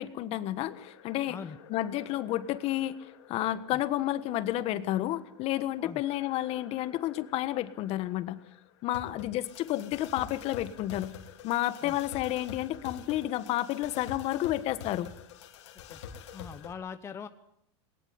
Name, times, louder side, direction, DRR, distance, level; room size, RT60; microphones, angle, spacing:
voice 1, 0.0-1.4 1.7-3.0 3.3-8.4 8.8-11.1 11.4-15.1, left 14 dB, 40° left, 15 dB, 1.4 m, -31 dB
sound 1, 0.7-16.7, left 8 dB, 80° left, 3.2 m, -48 dB
voice 2, 16.3-17.3, left 6 dB, 20° left, 10 dB, 0.9 m, -42 dB
20.0 x 19.5 x 9.6 m, 0.74 s
supercardioid pair, 140°, 15 cm